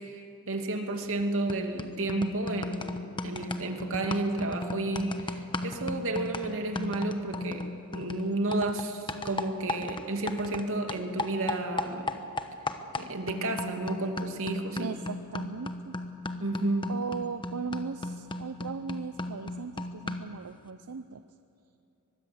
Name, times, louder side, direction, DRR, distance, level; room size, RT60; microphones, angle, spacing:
voice 1, 0.0-7.6 7.9-12.1 13.0-14.9 16.4-16.9, right 2 dB, 65° right, 4 dB, 2.5 m, -32 dB
sound 1, 1.0-1.2 1.5-10.6 10.9-20.4, left 2 dB, 20° left, 1.1 m, -36 dB
voice 2, 14.8-15.9 16.9-21.2, right 5 dB, 80° right, 11 dB, 0.7 m, -37 dB
24.0 x 21.5 x 7.9 m, 2.8 s
head